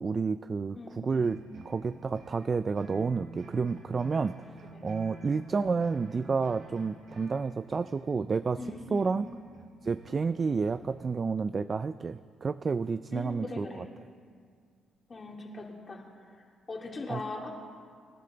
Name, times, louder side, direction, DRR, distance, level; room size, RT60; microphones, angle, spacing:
voice 1, 0.0-4.5 4.8-9.3 9.8-13.9 17.1-17.2, right 4 dB, 35° right, 13 dB, 0.3 m, -30 dB
voice 2, 0.7-1.3 4.5-4.8 8.6-9.1 13.1-13.8 15.1-16.0 16.3-16.4 16.7-17.5, left 3 dB, 35° left, 0 dB, 2.6 m, -40 dB
sound 1, 1.1-11.2, right 2 dB, 70° right, 2.8 m, -50 dB
25.0 x 11.0 x 3.9 m, 2.1 s
cardioid pair, 90°, 0 cm